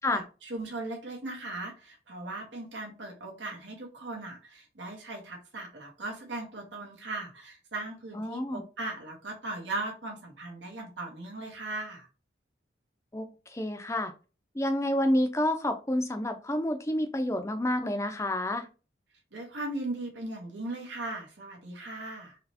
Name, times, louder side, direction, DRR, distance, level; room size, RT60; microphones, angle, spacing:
voice 1, 0.1-12.1 19.3-22.4, right 2 dB, 80° right, 0 dB, 1.3 m, -38 dB
voice 2, 8.1-8.6 13.1-14.1 14.5-18.7, left 1 dB, 15° left, 6 dB, 0.6 m, -29 dB
4.0 x 3.1 x 2.9 m, 0.33 s
head